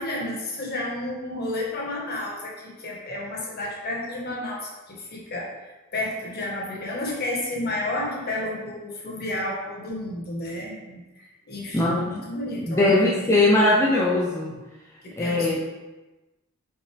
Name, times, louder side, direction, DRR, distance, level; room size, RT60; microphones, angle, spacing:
voice 1, 0.0-5.5 5.9-13.3 15.0-15.6, left 1 dB, 45° left, -3 dB, 1.5 m, -31 dB
voice 2, 11.7-12.2 12.7-14.5 15.2-15.6, left 2 dB, 15° left, -5 dB, 0.6 m, -20 dB
5.6 x 5.3 x 3.4 m, 1.1 s
head